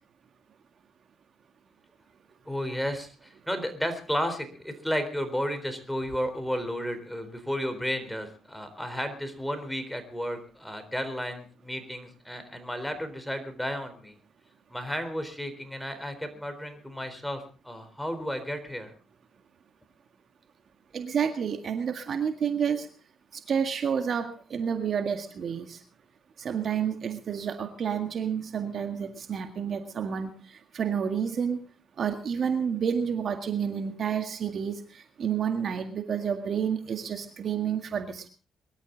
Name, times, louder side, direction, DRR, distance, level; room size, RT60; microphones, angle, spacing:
voice 1, 2.5-14.2 14.7-18.9, equal, ahead, 9 dB, 4.0 m, -33 dB
voice 2, 20.9-22.9 23.3-25.8 26.4-31.6 32.0-38.3, right 7 dB, 55° right, 7 dB, 1.8 m, -30 dB
23.0 x 12.5 x 4.0 m, 0.37 s
cardioid pair, 90°, 0 cm